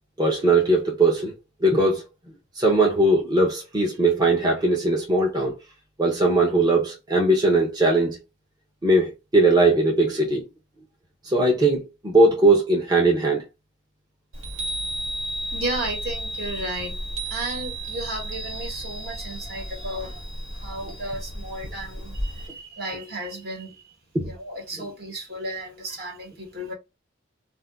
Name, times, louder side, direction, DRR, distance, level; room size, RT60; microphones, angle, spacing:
voice 1, 0.2-1.3 1.6-2.1 2.5-5.5 6.0-8.2 8.8-10.4 11.2-13.4 24.1-24.3 24.8-24.9, right 2 dB, 20° right, 0.6 m, -20 dB
Chime, 14.3-22.5, right 1 dB, 80° right, 1.4 m, -33 dB
voice 2, 15.5-16.9 17.3-20.2 20.6-23.7 24.3-26.7, right 1 dB, 50° right, 1.2 m, -33 dB
2.6 x 2.1 x 3.4 m
head